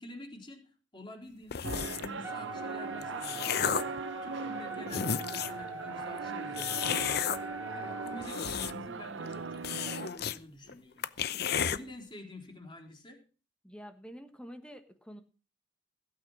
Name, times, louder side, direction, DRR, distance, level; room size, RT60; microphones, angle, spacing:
voice 1, 0.0-7.2 7.7-11.1 11.4-13.2, left 1 dB, 25° left, 2 dB, 3.7 m, -48 dB
sound 1, 1.5-2.2 2.8-4.0 4.6-4.7 4.9-5.6 6.6-7.4 8.1-9.0 9.2-9.3 9.6-10.4 10.7-10.8 11.0-11.8, left 8 dB, 60° left, 0.7 m, -32 dB
sound 2, 1.6-10.1, right 4 dB, 80° right, 0.7 m, -40 dB
Wind instrument woodwind instrument, 2.2-8.3, right 2 dB, 15° right, 1.4 m, -43 dB
voice 2, 13.6-15.2, equal, 5° left, 7 dB, 1.3 m, -47 dB
16.5 x 8.8 x 6.1 m, 0.36 s
head